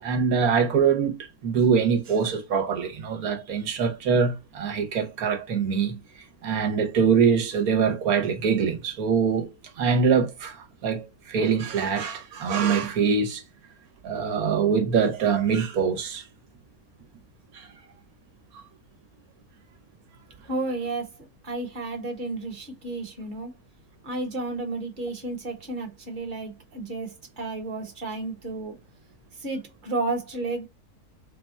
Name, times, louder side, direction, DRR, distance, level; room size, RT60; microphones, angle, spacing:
voice 1, 0.0-9.5 9.8-13.4 14.0-16.3 17.5-17.7, right 6 dB, 75° right, 1.4 m, -24 dB
voice 2, 20.5-23.5 24.0-28.8 29.3-30.7, right 2 dB, 35° right, 1.2 m, -32 dB
4.0 x 2.3 x 4.0 m
omnidirectional pair, 1.6 m